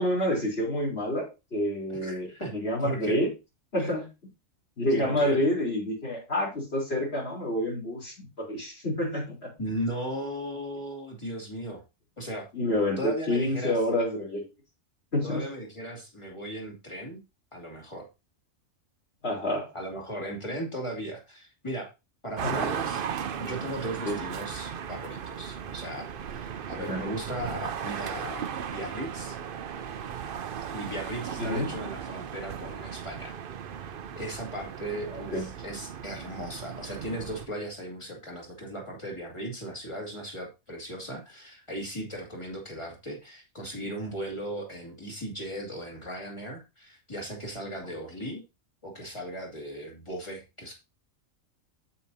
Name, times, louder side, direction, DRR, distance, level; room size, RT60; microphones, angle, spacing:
voice 1, 0.0-3.3 3.7-4.1 4.8-9.5 12.5-14.5 15.1-15.4 19.2-19.7 22.4-22.7 24.0-24.2 26.9-27.0 31.4-31.7 35.1-35.4, left 1 dB, 45° left, -2 dB, 3.7 m, -28 dB
voice 2, 1.9-2.5 2.8-3.2 3.8-3.9 5.0-5.4 9.6-11.8 12.2-12.5 13.0-13.8 15.2-17.2 17.5-18.1 19.7-21.9 22.2-23.0 23.4-29.4 30.7-33.4 34.2-48.4 48.8-50.7, right 1 dB, 20° left, 0 dB, 2.5 m, -37 dB
sound 1, 22.4-37.5, right 8 dB, 55° right, 0.7 m, -36 dB
8.5 x 8.4 x 2.7 m, 0.26 s
omnidirectional pair, 1.4 m